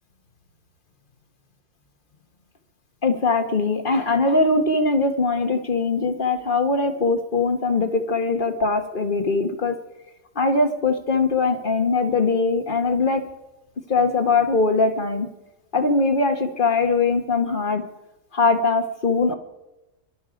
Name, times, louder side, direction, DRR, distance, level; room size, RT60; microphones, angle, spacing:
voice 1, 3.0-9.8 10.3-13.2 13.9-15.3 15.7-17.8 18.3-19.3, left 3 dB, 35° left, 7 dB, 1.1 m, -21 dB
22.0 x 12.0 x 5.0 m, 0.98 s
omnidirectional pair, 1.7 m